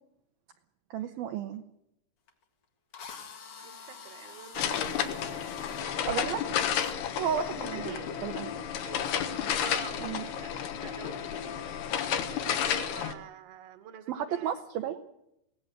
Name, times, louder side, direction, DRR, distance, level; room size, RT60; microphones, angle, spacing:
voice 1, 0.9-1.6 6.1-6.4 7.2-7.9 8.2-8.5 10.0-10.3 14.1-15.0, right 8 dB, 75° right, 5 dB, 2.3 m, -32 dB
Drill, 2.3-2.4 2.9-5.9 6.7-7.0, left 6 dB, 50° left, 1.8 m, -46 dB
voice 2, 3.6-6.3 7.7-8.2 8.8-9.3 9.6-11.5 12.6-14.6, right 9 dB, 50° right, 8 dB, 2.1 m, -47 dB
sound 1, 4.5-13.1, left 9 dB, 65° left, 2.9 m, -32 dB
23.0 x 17.5 x 8.0 m, 0.80 s
omnidirectional pair, 5.5 m